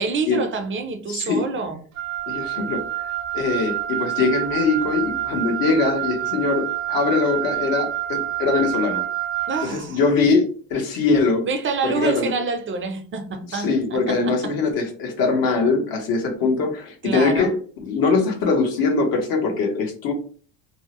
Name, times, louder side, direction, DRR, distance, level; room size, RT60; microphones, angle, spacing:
voice 1, 0.0-1.8 9.5-10.0 11.4-14.5 17.0-17.6, right 4 dB, 30° right, 0.5 m, -27 dB
voice 2, 1.1-1.6 2.3-9.0 9.6-11.5 11.8-12.3 13.5-20.1, left 4 dB, 55° left, 1.0 m, -22 dB
Wind instrument woodwind instrument, 2.0-9.7, right 14 dB, 80° right, 0.6 m, -27 dB
2.7 x 2.0 x 2.9 m
supercardioid pair, 85°, 42 cm